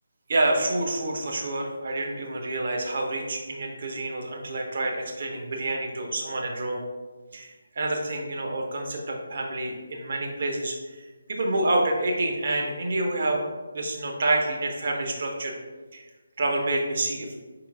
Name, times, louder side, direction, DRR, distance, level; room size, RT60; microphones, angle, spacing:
voice 1, 0.3-6.9 7.3-11.0 11.3-13.5 13.7-15.5 15.9-16.0 16.4-17.3, right 2 dB, 45° right, 0 dB, 0.8 m, -28 dB
5.6 x 2.9 x 2.5 m, 1.3 s
figure-of-eight pair, 150°, 0 cm